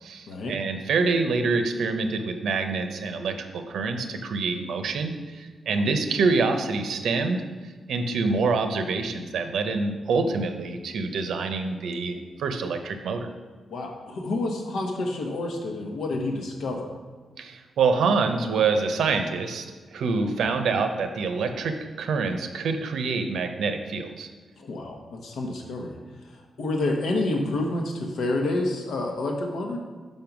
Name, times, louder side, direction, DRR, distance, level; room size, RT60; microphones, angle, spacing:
voice 1, 0.0-13.3 17.4-24.3, right 4 dB, 85° right, 7 dB, 0.7 m, -26 dB
voice 2, 13.7-16.9 20.4-20.5 24.6-26.0 26.3-29.8, left 2 dB, 80° left, 2 dB, 1.2 m, -29 dB
5.5 x 5.3 x 6.0 m, 1.4 s
wide cardioid pair, 175°, 0 cm